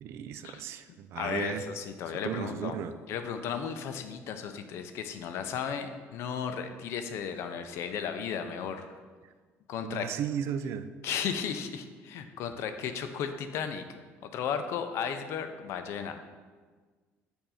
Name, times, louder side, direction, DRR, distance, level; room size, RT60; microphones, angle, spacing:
voice 1, 0.0-1.6 2.2-2.9 9.8-10.9, right 9 dB, 60° right, 11 dB, 0.3 m, -35 dB
voice 2, 1.1-2.8 3.1-9.0 9.7-10.1 11.0-13.8 14.2-16.2, left 7 dB, 60° left, 8 dB, 0.5 m, -35 dB
6.9 x 2.6 x 5.6 m, 1.5 s
cardioid pair, 145°, 5 cm